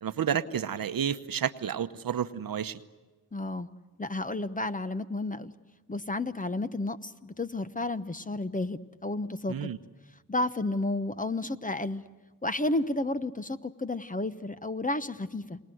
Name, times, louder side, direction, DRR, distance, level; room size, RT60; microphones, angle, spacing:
voice 1, 0.0-2.8 9.5-9.8, right 8 dB, 55° right, 11 dB, 1.0 m, -31 dB
voice 2, 3.3-3.7 4.0-5.5 5.9-9.7 10.3-12.0 12.4-15.6, left 2 dB, 20° left, 12 dB, 1.0 m, -32 dB
30.0 x 19.5 x 7.9 m, 1.2 s
supercardioid pair, 45°, 42 cm